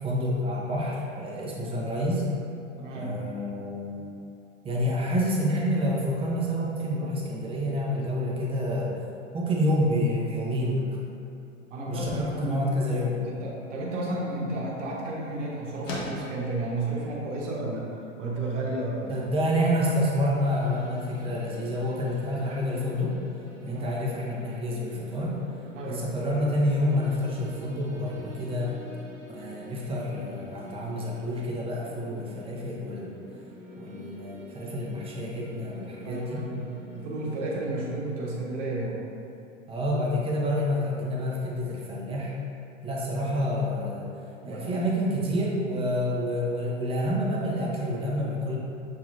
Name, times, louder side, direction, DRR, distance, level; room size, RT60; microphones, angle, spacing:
voice 1, 0.0-2.3 2.9-4.1 4.6-9.0 9.3-10.9 11.9-13.3 19.1-23.2 23.6-25.4 25.8-28.7 29.3-33.2 33.8-36.4 39.7-42.3 42.8-44.1 44.4-48.6, equal, 15° right, -4 dB, 0.6 m, -28 dB
voice 2, 2.8-3.3 11.7-12.7 13.2-17.8 18.2-19.2 23.7-24.0 25.7-26.1 35.7-39.0 43.1-43.3 44.4-44.8, right 2 dB, 65° right, -3 dB, 0.9 m, -32 dB
sound 1, 13.8-23.6, left 1 dB, 70° left, 1.0 m, -45 dB
sound 2, 20.4-37.9, equal, 35° right, 1.2 m, -47 dB
6.3 x 2.8 x 2.4 m, 2.6 s
hypercardioid pair, 105°, 39 cm